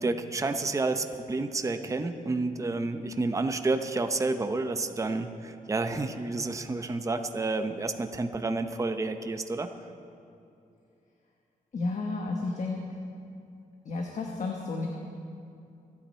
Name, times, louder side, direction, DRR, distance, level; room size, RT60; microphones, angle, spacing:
voice 1, 0.0-9.7, right 3 dB, 20° right, 7 dB, 0.7 m, -30 dB
voice 2, 11.7-12.8 13.8-14.9, left 3 dB, 55° left, 1 dB, 1.3 m, -32 dB
26.5 x 9.8 x 4.3 m, 2.6 s
wide cardioid pair, 120°, 15 cm